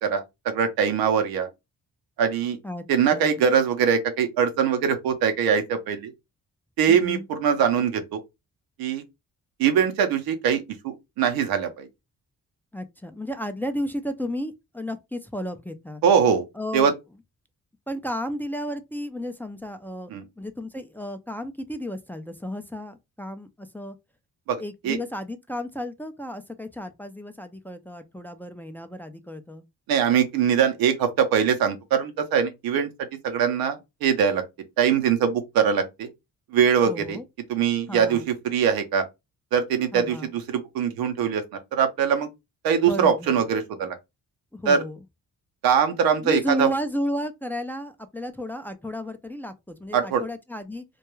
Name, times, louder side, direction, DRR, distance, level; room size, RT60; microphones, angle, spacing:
voice 1, 0.0-1.5 2.2-2.6 2.9-6.1 6.8-8.2 8.8-9.0 9.6-11.9 16.0-16.5 16.7-16.9 20.1-20.2 24.5-25.0 29.9-32.9 33.2-34.4 34.8-36.1 36.5-37.2 37.5-39.0 39.5-41.4 41.7-42.3 42.6-44.0 44.7-44.8 45.6-46.7 49.9-50.2, right 7 dB, 90° right, 0.6 m, -22 dB
voice 2, 6.9-7.3 12.7-16.0 16.5-16.9 17.9-20.1 20.4-24.0 24.6-29.6 36.8-37.2 37.9-38.3 39.9-40.3 42.8-43.4 44.5-45.0 46.2-50.8, equal, 5° left, 0.4 m, -33 dB
2.3 x 2.2 x 3.0 m
cardioid pair, 65°, 35 cm